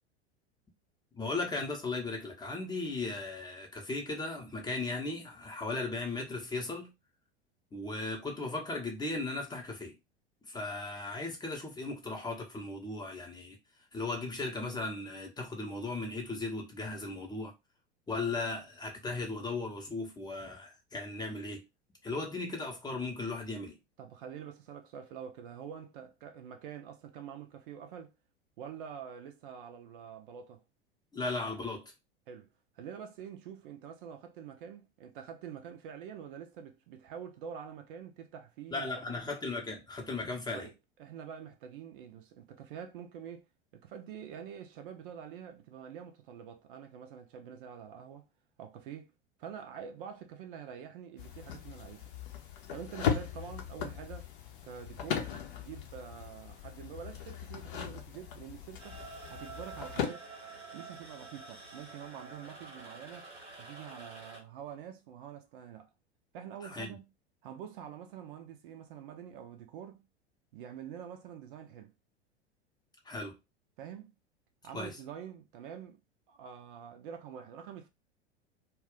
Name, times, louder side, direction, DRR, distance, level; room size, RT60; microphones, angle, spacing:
voice 1, 1.1-6.9 7.7-9.9 10.4-13.6 13.9-17.5 18.1-21.6 22.0-23.8 31.1-31.9 38.7-40.7 66.6-66.9 73.0-73.4 74.7-75.0, left 3 dB, 10° left, 0.7 m, -37 dB
voice 2, 24.0-28.1 28.6-30.6 32.3-32.5 32.7-39.2 40.5-40.7 41.0-43.4 43.7-48.3 48.6-49.1 49.4-52.1 52.7-54.3 54.6-55.3 55.6-59.0 59.3-60.3 60.7-63.3 63.6-65.9 66.3-67.1 67.4-70.1 70.5-71.9 73.8-74.1 74.6-76.0 76.3-77.9, right 8 dB, 50° right, 0.5 m, -46 dB
sound 1, 51.2-60.1, left 8 dB, 55° left, 0.7 m, -38 dB
sound 2, 58.8-64.4, right 3 dB, 85° right, 1.0 m, -48 dB
2.3 x 2.2 x 3.6 m
figure-of-eight pair, 85°, 33 cm